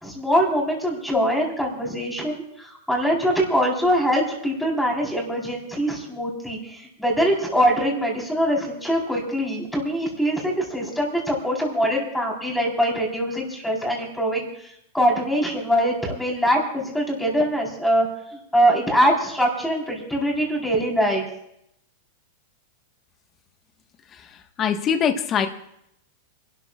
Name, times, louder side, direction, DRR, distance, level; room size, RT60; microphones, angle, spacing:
voice 1, 0.0-14.5 14.9-18.1 18.5-21.2, equal, 5° left, -2 dB, 4.2 m, -23 dB
voice 2, 24.6-25.5, left 7 dB, 30° left, 6 dB, 1.4 m, -22 dB
29.0 x 13.0 x 2.4 m, 0.77 s
supercardioid pair, 140°, 0 cm